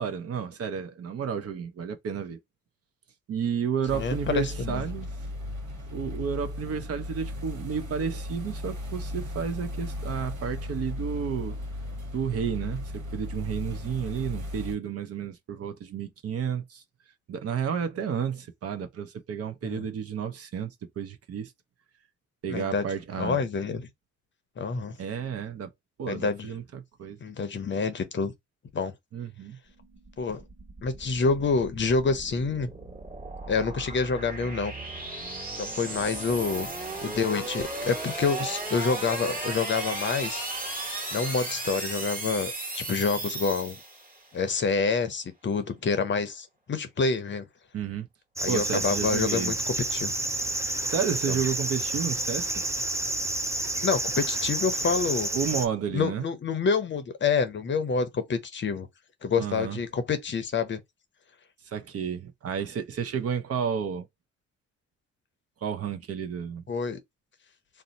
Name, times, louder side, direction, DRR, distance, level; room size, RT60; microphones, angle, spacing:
voice 1, 0.0-2.4 3.3-5.1 5.9-11.6 12.1-16.8 17.3-21.5 22.4-23.4 25.0-25.7 26.0-27.2 29.1-29.6 47.7-48.1 48.5-49.6 50.9-52.5 55.3-56.3 59.4-59.8 61.6-64.1 65.6-66.6, right 7 dB, 50° right, 0.7 m, -31 dB
voice 2, 3.9-4.8 19.6-19.8 22.5-22.9 23.2-23.9 24.6-25.0 26.1-26.5 27.2-28.3 28.7-28.9 30.2-30.4 30.8-32.7 33.5-34.7 35.6-36.7 37.0-40.5 41.1-43.8 44.3-47.5 48.4-50.1 51.3-51.4 53.8-55.3 55.9-58.9 59.2-60.8 66.7-67.0, left 5 dB, 40° left, 0.6 m, -27 dB
sound 1, 3.9-14.8, left 1 dB, 80° right, 1.1 m, -36 dB
sound 2, 29.7-44.3, right 2 dB, 25° right, 1.4 m, -36 dB
sound 3, 48.4-55.7, right 2 dB, 10° right, 0.4 m, -29 dB
2.6 x 2.1 x 3.9 m
cardioid pair, 90°, 30 cm